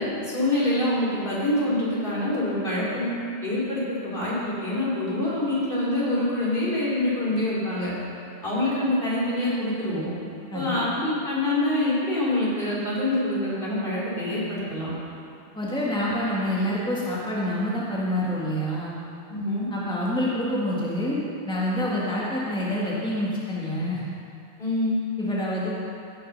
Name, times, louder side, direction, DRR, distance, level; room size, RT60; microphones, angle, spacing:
voice 1, 0.0-3.1 3.4-7.9 8.4-10.1 10.5-14.9 19.3-19.7 24.6-25.0, left 1 dB, 55° left, -8 dB, 3.7 m, -25 dB
voice 2, 15.5-19.0 19.7-24.0 25.2-25.7, left 1 dB, 5° left, -7 dB, 1.7 m, -27 dB
16.5 x 6.7 x 5.4 m, 2.6 s
omnidirectional pair, 1.1 m